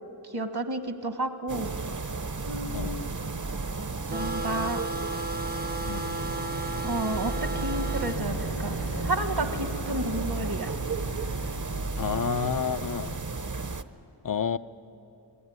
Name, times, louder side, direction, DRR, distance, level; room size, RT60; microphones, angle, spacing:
voice 1, 0.2-1.7 2.4-3.1 4.1-4.8 6.8-10.7, right 2 dB, 65° right, 8 dB, 1.5 m, -31 dB
sound 1, 1.5-13.8, right 3 dB, 45° right, 0.9 m, -33 dB
sound 2, 4.1-13.5, left 1 dB, 80° left, 5.4 m, -41 dB
sound 3, 4.1-8.2, right 2 dB, 25° right, 0.6 m, -34 dB
voice 2, 12.0-13.2 14.2-14.6, left 6 dB, 50° left, 13 dB, 0.7 m, -29 dB
26.5 x 19.5 x 9.7 m, 2.8 s
wide cardioid pair, 55°, 41 cm